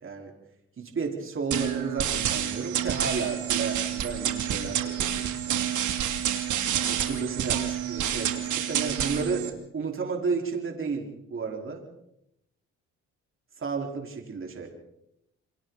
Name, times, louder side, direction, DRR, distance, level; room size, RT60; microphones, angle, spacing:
voice 1, 0.0-0.3 0.8-5.4 6.8-11.8 13.6-14.7, right 4 dB, 45° right, 1 dB, 4.5 m, -32 dB
sound 1, 1.5-9.5, right 10 dB, 75° right, 2.7 m, -28 dB
29.0 x 23.5 x 4.1 m, 0.79 s
cardioid pair, 90°, 30 cm